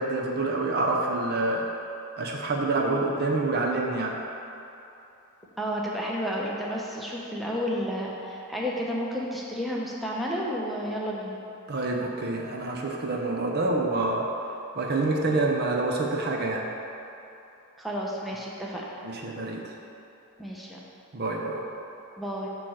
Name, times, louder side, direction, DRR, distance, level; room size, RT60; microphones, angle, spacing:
voice 1, 0.0-1.7 2.2-4.2 11.7-14.3 14.8-16.7 19.0-19.8 21.1-21.6, right 2 dB, 50° right, 0 dB, 0.7 m, -27 dB
voice 2, 5.6-11.4 17.8-19.0 20.4-20.8 22.2-22.5, equal, ahead, -4 dB, 0.8 m, -31 dB
8.3 x 3.1 x 6.4 m, 2.9 s
head